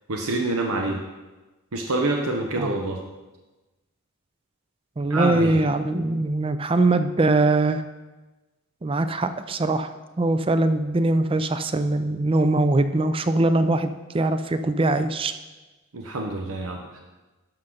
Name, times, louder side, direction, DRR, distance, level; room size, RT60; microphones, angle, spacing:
voice 1, 0.1-1.0 1.7-3.0 5.1-5.6 15.9-17.0, right 2 dB, 80° right, 1 dB, 0.8 m, -26 dB
voice 2, 5.0-7.8 8.8-9.9 10.2-15.3, right 2 dB, 25° right, 10 dB, 0.4 m, -22 dB
11.5 x 6.5 x 3.9 m, 1.2 s
head